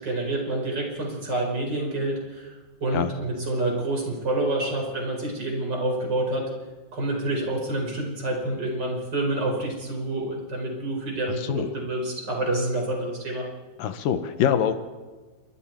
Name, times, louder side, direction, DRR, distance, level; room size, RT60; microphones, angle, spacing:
voice 1, 0.0-6.5 6.9-13.5, right 2 dB, 25° right, 0 dB, 5.0 m, -28 dB
voice 2, 11.4-11.7 13.8-14.8, left 9 dB, 65° left, 9 dB, 2.4 m, -24 dB
27.5 x 23.5 x 4.6 m, 1.3 s
omnidirectional pair, 4.9 m